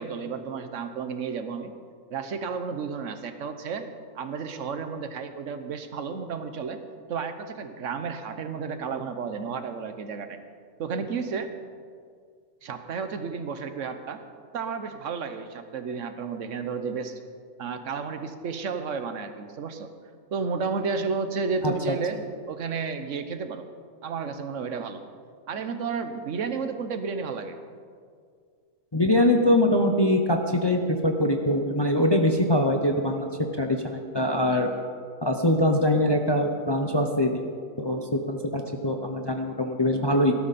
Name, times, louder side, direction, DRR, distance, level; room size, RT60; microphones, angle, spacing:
voice 1, 0.0-1.7 2.1-3.9 4.1-6.8 7.1-10.4 10.8-11.5 12.6-14.2 14.5-17.1 17.6-19.9 20.3-23.7 24.0-25.0 25.5-27.6, right 5 dB, 70° right, 9 dB, 1.3 m, -32 dB
voice 2, 21.6-22.0 28.9-33.3 33.6-34.7 35.2-37.4 37.8-40.3, left 1 dB, 25° left, 4 dB, 0.7 m, -23 dB
18.0 x 12.5 x 4.2 m, 2.1 s
omnidirectional pair, 1.4 m